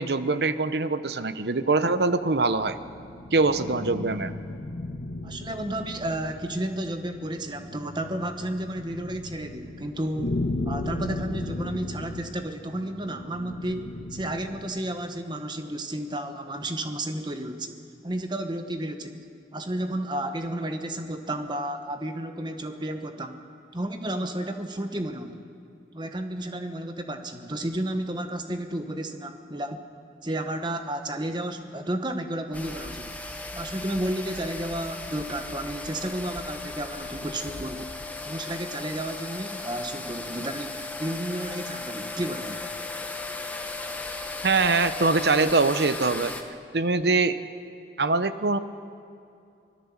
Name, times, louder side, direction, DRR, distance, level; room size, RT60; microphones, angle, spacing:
voice 1, 0.0-2.8 3.3-4.3 44.4-46.3 46.7-47.4 48.0-48.6, right 3 dB, 70° right, 12 dB, 0.9 m, -23 dB
sound 1, 2.1-14.7, left 2 dB, 60° left, 1.4 m, -36 dB
voice 2, 5.2-10.4 10.6-17.8 18.0-19.3 19.5-23.4 23.7-25.4 25.9-29.8 30.2-33.1 33.5-37.9 38.2-42.6, right 1 dB, 25° right, 6 dB, 1.3 m, -32 dB
sound 2, 32.5-46.4, left 2 dB, 10° left, 1.1 m, -36 dB
25.0 x 17.5 x 7.3 m, 2.5 s
head